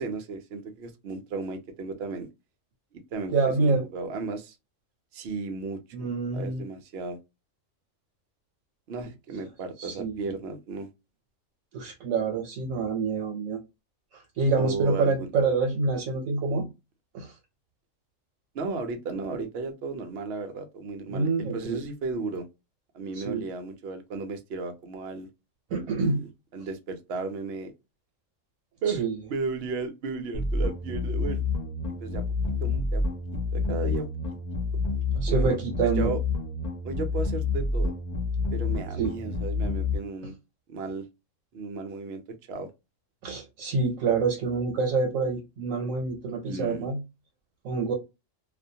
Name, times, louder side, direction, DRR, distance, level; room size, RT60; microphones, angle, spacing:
voice 1, 0.0-2.3 2.9-4.6 5.1-6.1 6.3-7.2 8.9-10.9 14.6-15.3 18.5-22.4 22.9-25.3 25.9-27.7 28.8-29.0 29.3-31.4 32.0-32.2 32.6-33.0 33.5-34.1 35.3-36.2 36.8-37.9 38.5-40.3 40.7-41.0 41.5-42.2 42.5-42.7 46.5-46.9, right 4 dB, 60° right, 0.8 m, -34 dB
voice 2, 3.3-3.9 5.9-6.6 9.8-10.3 11.7-13.6 14.1-16.7 17.1-17.3 21.1-21.8 23.1-23.4 25.7-26.2 28.9-29.1 35.2-36.1 39.0-39.1 43.2-47.0 47.6-47.9, right 4 dB, 85° right, 1.1 m, -27 dB
sound 1, 30.3-39.9, left 3 dB, 85° left, 0.3 m, -28 dB
2.4 x 2.2 x 2.6 m
omnidirectional pair, 1.3 m